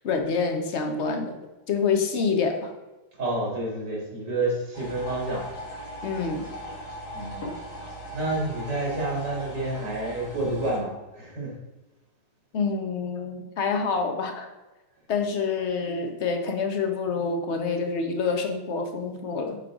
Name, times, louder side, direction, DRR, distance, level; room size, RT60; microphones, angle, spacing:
voice 1, 0.0-1.3 1.7-2.7 6.0-6.5 12.5-14.5 15.1-19.6, left 5 dB, 50° left, 4 dB, 1.0 m, -27 dB
voice 2, 3.2-5.4 7.1-7.4 8.1-11.5, right 2 dB, 80° right, -3 dB, 2.8 m, -29 dB
sound 1, 4.7-10.8, right 1 dB, 65° left, 2.3 m, -39 dB
6.9 x 5.2 x 3.6 m, 1.1 s
omnidirectional pair, 1.8 m